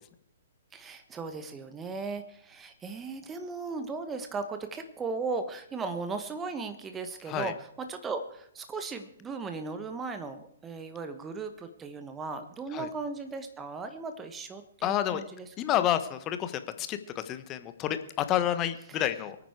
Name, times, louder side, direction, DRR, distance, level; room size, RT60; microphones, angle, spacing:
voice 1, 0.7-15.9, right 4 dB, 15° right, 8 dB, 1.2 m, -37 dB
voice 2, 14.8-15.2 15.6-19.4, left 11 dB, 25° left, 11 dB, 1.2 m, -29 dB
24.0 x 9.4 x 4.8 m, 0.70 s
figure-of-eight pair, 120°, 0 cm